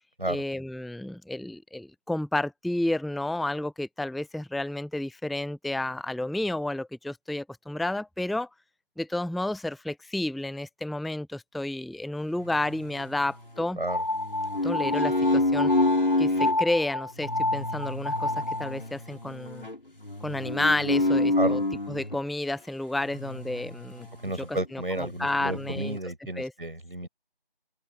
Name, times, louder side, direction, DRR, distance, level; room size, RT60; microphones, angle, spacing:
voice 1, 0.3-8.5 9.0-13.8 14.6-15.7 16.2-19.7 20.2-21.6 21.9-24.1 24.7-26.0 26.4-26.5, left 1 dB, ahead, 0.6 m, -31 dB
sound 1, 12.4-13.6 14.1-16.6 17.2-22.2 23.1-24.3 24.6-24.7 25.0-26.0, left 2 dB, 65° left, 5.0 m, -28 dB
sound 2, 13.9-18.8, left 2 dB, 30° left, 2.5 m, -30 dB
voice 2, 24.2-27.1, right 1 dB, 65° right, 6.3 m, -32 dB
open air
figure-of-eight pair, 175°, 29 cm